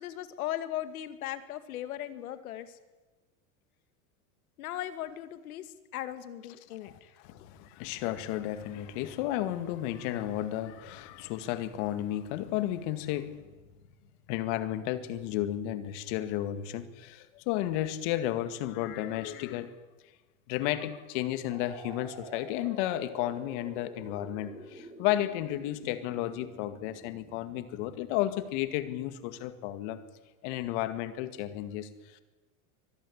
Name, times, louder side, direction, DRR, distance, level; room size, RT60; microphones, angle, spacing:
voice 1, 0.0-2.8 4.6-7.2, left 12 dB, 85° left, 11 dB, 2.2 m, -38 dB
voice 2, 6.8-13.4 14.3-19.7 20.5-30.0 30.4-32.2, left 13 dB, 55° left, 11 dB, 2.1 m, -33 dB
sound 1, 21.5-29.2, right 2 dB, 15° right, 6.1 m, -49 dB
24.0 x 14.0 x 10.0 m, 1.2 s
supercardioid pair, 150°, 42 cm